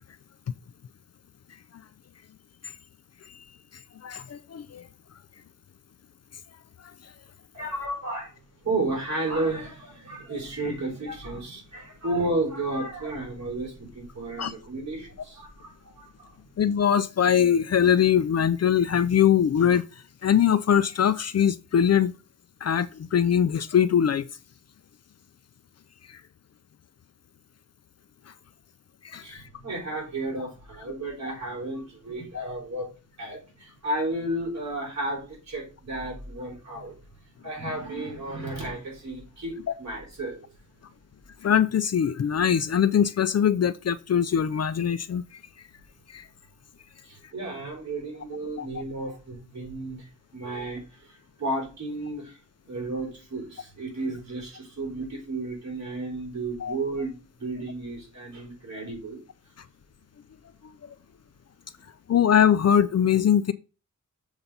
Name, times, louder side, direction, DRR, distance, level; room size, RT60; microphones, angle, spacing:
voice 1, 4.0-4.9 14.4-14.5 16.6-19.8 20.2-22.1 22.6-24.3 26.1-26.2 29.0-29.4 32.3-32.5 39.7-39.8 41.4-45.2 46.1-46.3 48.6-48.7 56.6-56.8 62.1-63.5, left 8 dB, 50° left, 0.5 m, -22 dB
voice 2, 7.5-8.4 8.6-16.3 29.2-32.9 33.2-37.0 37.4-40.4 47.0-52.4 52.7-59.2, right 2 dB, 55° right, 4.1 m, -33 dB
7.0 x 3.9 x 5.5 m
wide cardioid pair, 105°, 32 cm